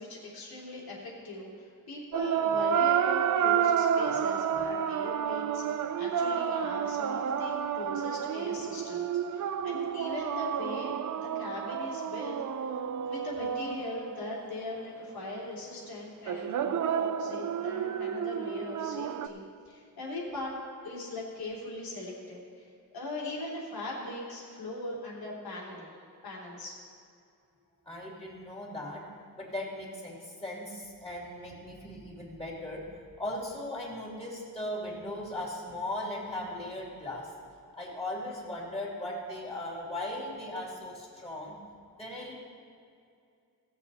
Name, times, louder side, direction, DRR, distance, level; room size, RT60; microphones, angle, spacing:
voice 1, 0.0-10.9 11.2-12.7 13.1-20.6 20.8-22.7 22.9-25.9 26.2-26.8, left 2 dB, 85° left, -4 dB, 3.3 m, -40 dB
sound 1, 2.1-14.7 16.3-19.3, right 8 dB, 60° right, 0.5 m, -30 dB
voice 2, 27.9-29.1 29.3-32.8 33.2-37.3 37.8-41.6 42.0-42.3, left 1 dB, 15° left, -4 dB, 2.8 m, -38 dB
17.0 x 7.2 x 4.2 m, 2.5 s
wide cardioid pair, 145°, 35 cm